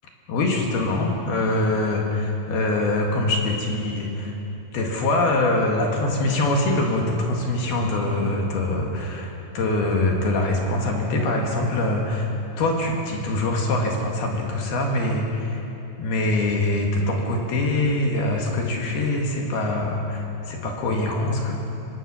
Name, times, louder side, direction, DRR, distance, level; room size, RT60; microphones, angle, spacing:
voice 1, 0.3-4.4 4.7-12.3 12.6-15.6 16.0-21.5, left 2 dB, 60° left, 0 dB, 3.6 m, -23 dB
24.0 x 18.5 x 6.3 m, 2.9 s
omnidirectional pair, 5.4 m